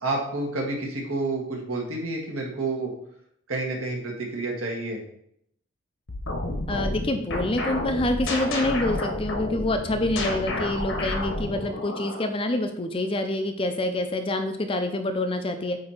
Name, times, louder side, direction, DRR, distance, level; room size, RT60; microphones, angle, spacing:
voice 1, 0.0-2.9 3.5-5.0, right 2 dB, 80° right, -1 dB, 1.6 m, -29 dB
sound 1, 6.1-12.3, left 2 dB, 60° left, 1.1 m, -30 dB
voice 2, 6.7-15.8, left 1 dB, 25° left, 7 dB, 0.5 m, -27 dB
8.5 x 2.9 x 4.4 m, 0.71 s
head